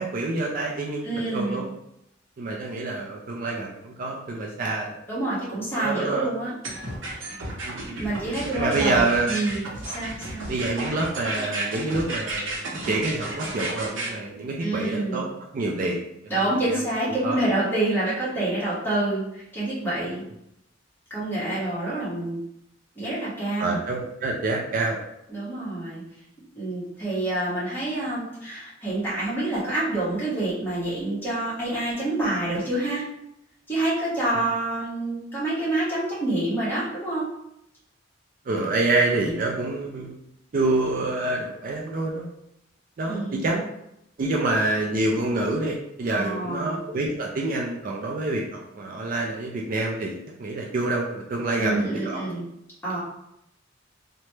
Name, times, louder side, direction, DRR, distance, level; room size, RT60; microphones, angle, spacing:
voice 1, 0.0-1.7 2.4-5.0 5.8-6.3 7.6-8.1 8.5-9.3 10.5-15.3 15.5-16.3 16.6-16.8 17.1-17.4 23.6-25.0 38.5-40.2 40.5-42.3 43.0-43.7 44.2-52.2, right 2 dB, 45° right, -1 dB, 0.4 m, -27 dB
voice 2, 1.0-1.7 5.1-6.5 7.9-10.5 14.6-15.3 16.3-20.2 21.1-22.4 22.9-23.8 25.3-26.0 26.6-33.0 33.7-37.3 43.0-43.4 46.1-46.8 51.6-52.5 52.8-53.0, right 2 dB, 10° left, -9 dB, 1.3 m, -27 dB
sound 1, 6.6-14.1, right 2 dB, 80° right, 0.8 m, -32 dB
2.9 x 2.1 x 3.1 m, 0.81 s
head